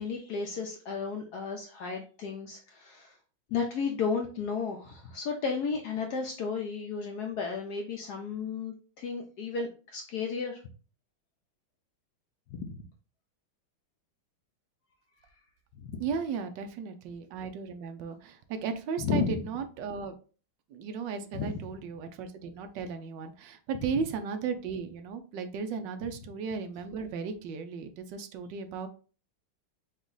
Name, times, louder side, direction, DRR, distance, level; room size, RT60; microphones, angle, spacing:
voice 1, 0.0-3.2 3.5-10.6 12.5-12.8 15.8-16.0 19.0-19.4 21.3-21.7, left 5 dB, 70° left, 2 dB, 0.9 m, -33 dB
voice 2, 16.0-20.1 20.7-28.9, right 6 dB, 70° right, 8 dB, 1.2 m, -35 dB
5.0 x 2.4 x 3.8 m, 0.38 s
omnidirectional pair, 2.2 m